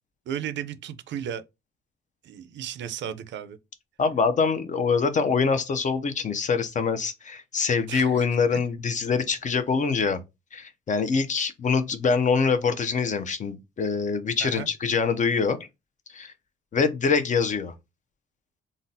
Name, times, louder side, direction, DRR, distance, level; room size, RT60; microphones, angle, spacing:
voice 1, 0.3-1.4 2.2-3.6 7.9-8.2 8.5-8.6 14.4-14.7, right 9 dB, 65° right, 0.5 m, -34 dB
voice 2, 4.0-10.2 10.5-15.6 16.1-16.3 16.7-17.7, left 5 dB, 40° left, 0.5 m, -24 dB
3.8 x 2.0 x 2.6 m
cardioid pair, 90°, 20 cm